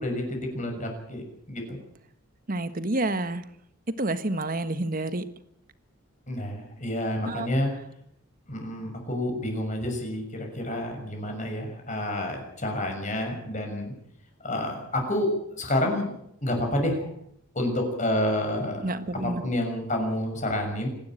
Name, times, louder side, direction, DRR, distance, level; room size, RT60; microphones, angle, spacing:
voice 1, 0.0-1.8 6.3-7.7 8.5-13.9 14.4-16.1 16.4-17.1 17.5-18.8 19.2-20.9, left 1 dB, 35° left, 3 dB, 6.6 m, -29 dB
voice 2, 2.5-3.4 4.0-5.2 7.2-7.5 18.8-19.4, right 2 dB, 40° right, 11 dB, 1.4 m, -28 dB
26.0 x 12.0 x 9.1 m, 0.73 s
head